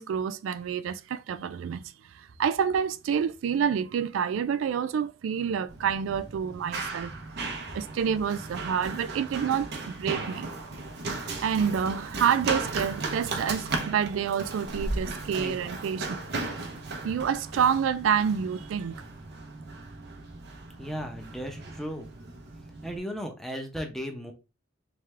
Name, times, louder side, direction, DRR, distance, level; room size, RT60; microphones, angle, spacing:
voice 1, 0.0-1.8 2.1-7.1 7.7-10.5 11.4-16.2 17.0-19.0, right 7 dB, 90° right, 0.3 m, -28 dB
Run, 5.7-23.0, right 3 dB, 60° right, 0.8 m, -36 dB
voice 2, 20.8-22.1 22.8-24.3, equal, ahead, 0.7 m, -35 dB
3.5 x 3.4 x 3.2 m
head